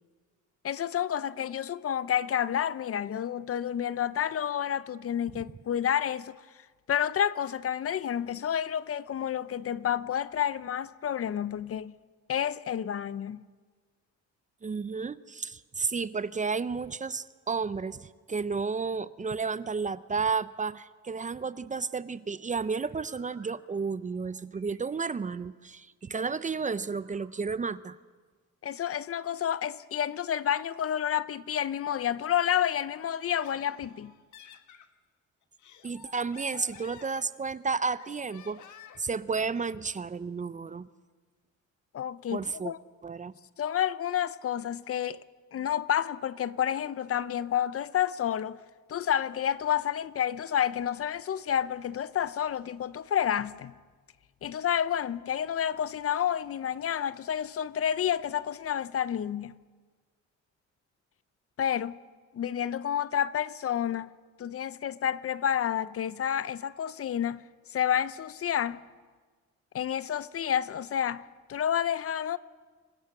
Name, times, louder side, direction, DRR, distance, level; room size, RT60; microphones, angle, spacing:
voice 1, 0.6-6.4 6.9-12.0 12.3-13.4 28.6-34.1 41.9-42.8 43.6-45.2 45.5-48.6 48.9-53.7 54.4-59.5 61.6-62.0 62.3-64.1 64.4-68.8 69.7-72.4, left 9 dB, 50° left, 0.7 m, -30 dB
voice 2, 14.6-28.0 35.8-38.6 39.0-40.9 42.3-42.7 43.0-43.3, right 5 dB, 25° right, 0.6 m, -32 dB
sound 1, 22.2-26.2 26.6-27.3 27.7-27.8, right 5 dB, 60° right, 4.9 m, -61 dB
Laughter, 33.2-34.9 35.4-37.6 38.0-39.1, left 9 dB, 75° left, 1.4 m, -52 dB
26.5 x 15.5 x 6.6 m
cardioid pair, 90°, 30 cm